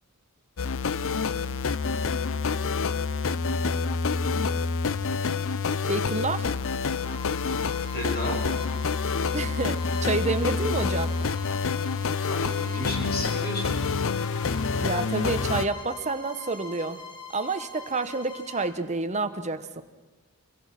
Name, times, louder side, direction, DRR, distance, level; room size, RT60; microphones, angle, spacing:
sound 1, 0.6-15.6, left 4 dB, 65° left, 0.7 m, -27 dB
voice 1, 5.9-6.5 9.3-11.1 14.8-17.0 17.3-19.8, right 3 dB, 30° right, 10 dB, 1.1 m, -29 dB
Bowed string instrument, 7.0-18.8, left 3 dB, 20° left, 2.4 m, -43 dB
voice 2, 7.9-8.4 12.2-13.8, left 1 dB, 45° left, 1 dB, 6.3 m, -33 dB
27.5 x 22.5 x 6.0 m, 1.2 s
head